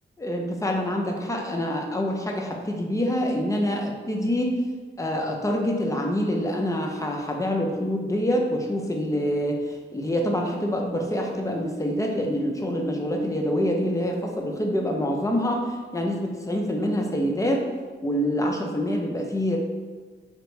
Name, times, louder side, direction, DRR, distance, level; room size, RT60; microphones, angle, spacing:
voice 1, 0.2-4.6 5.0-17.6 18.0-19.6, equal, 15° left, 1 dB, 0.7 m, -26 dB
3.1 x 2.9 x 4.4 m, 1.4 s
cardioid pair, 80°, 21 cm